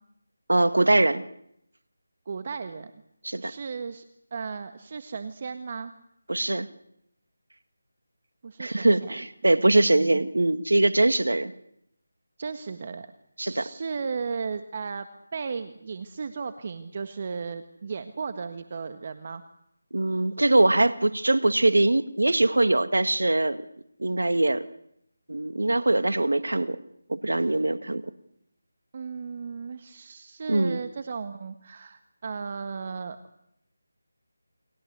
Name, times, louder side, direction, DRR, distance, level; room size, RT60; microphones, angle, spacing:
voice 1, 0.5-1.2 3.2-3.5 6.3-6.7 8.6-11.5 13.4-13.7 19.9-23.6 24.0-24.7 25.3-26.8 27.1-28.0 30.5-30.8, right 2 dB, 80° right, 12 dB, 1.9 m, -22 dB
voice 2, 2.2-2.9 3.4-4.0 4.3-5.9 8.4-9.2 9.7-10.3 12.4-13.1 13.4-15.1 15.3-19.4 28.9-33.2, right 5 dB, 40° right, 10 dB, 1.6 m, -35 dB
29.5 x 24.0 x 8.1 m, 0.76 s
figure-of-eight pair, 165°, 0 cm